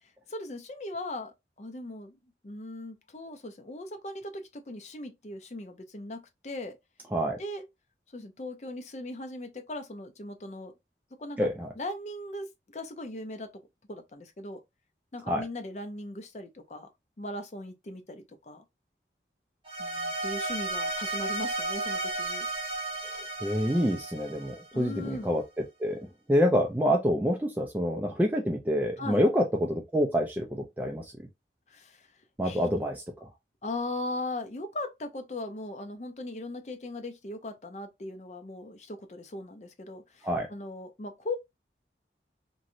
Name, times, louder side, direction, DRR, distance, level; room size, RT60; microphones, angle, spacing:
voice 1, 0.3-2.2 2.4-6.8 7.4-7.7 8.1-10.7 11.2-11.5 11.8-13.5 13.9-14.6 15.1-16.9 17.2-18.6 19.8-22.5 24.7-25.4 29.0-29.2 31.7-32.1 32.4-32.7 33.6-41.3, left 2 dB, 40° left, 0.5 m, -39 dB
voice 2, 11.4-11.7 15.3-15.4 23.0-25.4 25.8-26.0 26.3-31.1 32.4-33.0 40.2-40.5, equal, 10° right, 0.4 m, -27 dB
sound 1, 19.7-25.0, right 2 dB, 30° right, 1.3 m, -34 dB
3.0 x 2.7 x 2.6 m
head